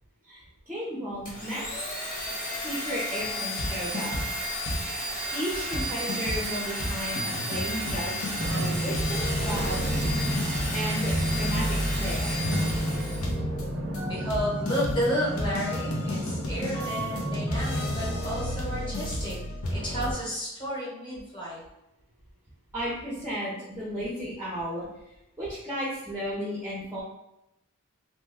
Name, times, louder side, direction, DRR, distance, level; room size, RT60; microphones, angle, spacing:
voice 1, 0.2-2.0 2.6-4.2 5.3-9.8 10.7-12.4 22.7-24.9 25.4-27.0, equal, 10° right, -6 dB, 0.6 m, -34 dB
Domestic sounds home sounds, 1.3-13.4, equal, 40° left, 0.8 m, -33 dB
sound 1, 3.6-4.4 4.7-5.1 5.4-5.5 5.7-20.1, left 1 dB, 80° left, 0.7 m, -32 dB
sound 2, 8.4-17.9, right 1 dB, 55° right, 0.5 m, -31 dB
voice 2, 14.1-19.4 19.7-21.6, equal, 20° left, -7 dB, 1.1 m, -32 dB
2.9 x 2.2 x 3.4 m, 0.88 s
head